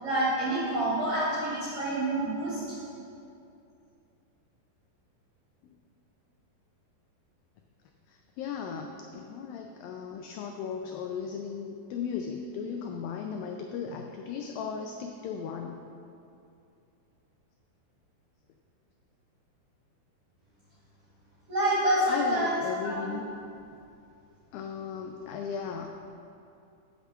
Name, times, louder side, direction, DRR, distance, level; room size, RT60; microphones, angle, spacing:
voice 1, 0.0-2.7 21.5-23.1, right 1 dB, 40° right, -10 dB, 3.2 m, -28 dB
voice 2, 8.1-15.8 22.1-23.3 24.5-25.9, left 6 dB, 85° left, 3 dB, 2.0 m, -36 dB
8.1 x 6.6 x 7.3 m, 2.6 s
omnidirectional pair, 4.7 m